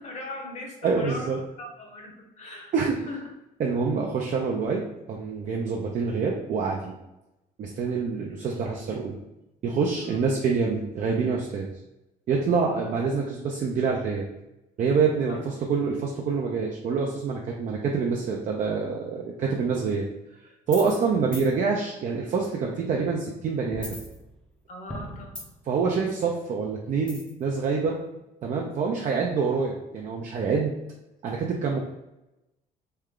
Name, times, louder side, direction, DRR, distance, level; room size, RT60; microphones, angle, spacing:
voice 1, 0.0-1.3 1.6-2.7 3.1-3.2 3.9-4.0 10.0-10.2 15.3-15.5 24.7-25.4 27.9-28.0, left 2 dB, 40° left, -1 dB, 1.1 m, -39 dB
voice 2, 0.8-1.4 2.7-2.9 3.6-4.8 5.1-6.9 7.6-9.2 9.6-11.7 12.3-14.3 14.8-20.1 20.7-24.0 25.7-28.0 28.4-30.7 31.2-31.8, right 5 dB, 50° right, -1 dB, 0.5 m, -26 dB
sound 1, 20.7-21.0 21.3-21.5 23.7-24.6 24.9-25.7 27.1-27.4, equal, 5° left, 0.6 m, -38 dB
3.3 x 2.3 x 3.6 m, 0.92 s
cardioid pair, 110°, 17 cm